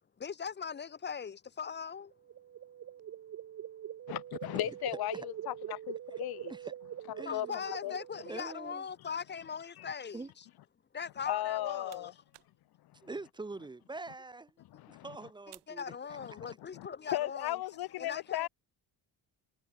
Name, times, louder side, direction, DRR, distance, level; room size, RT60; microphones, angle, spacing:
voice 1, 0.2-2.1 7.2-10.4 10.9-12.1 15.7-17.6 18.0-18.5, left 6 dB, 25° left, 1.1 m, -40 dB
sound 1, 2.1-8.8, right 10 dB, 40° right, 0.8 m, -44 dB
voice 2, 4.1-6.5 7.1-7.9 9.0-9.1 9.8-9.9 11.3-12.1 12.8-13.1 14.7-15.3 15.9-16.5 16.7-18.5, left 15 dB, 65° left, 0.9 m, -37 dB
voice 3, 7.2-7.6 8.3-8.8 10.1-10.3 13.0-14.5 14.9-15.8, right 3 dB, 10° right, 0.5 m, -44 dB
sound 2, 11.4-16.7, right 17 dB, 85° right, 3.2 m, -64 dB
cardioid pair, 155°, 40 cm